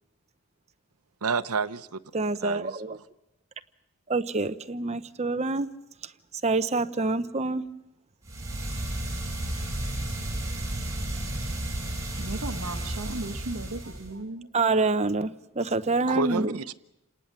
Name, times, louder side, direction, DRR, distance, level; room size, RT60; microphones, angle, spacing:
voice 1, 1.2-2.0 2.4-2.8 16.1-16.7, right 5 dB, 85° right, 0.8 m, -29 dB
voice 2, 2.1-3.0 4.1-5.7 6.4-7.6 14.5-16.5, right 3 dB, 30° right, 0.8 m, -26 dB
sound 1, 8.2-14.1, right 1 dB, 15° right, 5.9 m, -32 dB
voice 3, 12.1-14.5, right 2 dB, 65° right, 1.2 m, -36 dB
28.5 x 18.5 x 7.4 m
head